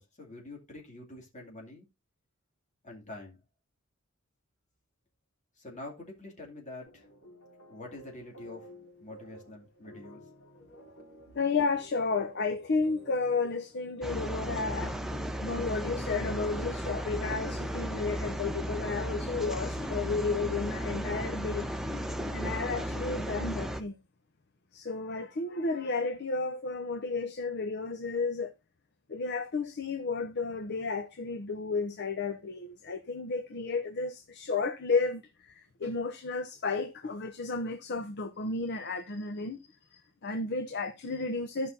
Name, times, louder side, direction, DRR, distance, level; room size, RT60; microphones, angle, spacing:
voice 1, 0.0-1.9 2.8-3.4 5.6-7.1 7.7-8.7 9.0-10.2, left 2 dB, 35° left, 2.5 m, -46 dB
sound 1, 6.9-18.6, equal, 85° left, 3.8 m, -54 dB
voice 2, 11.3-15.0 15.4-21.7 22.3-23.9 24.7-28.5 29.1-41.7, left 4 dB, 55° left, 0.7 m, -32 dB
sound 2, 14.0-23.8, equal, ahead, 0.7 m, -35 dB
14.5 x 5.6 x 2.7 m
head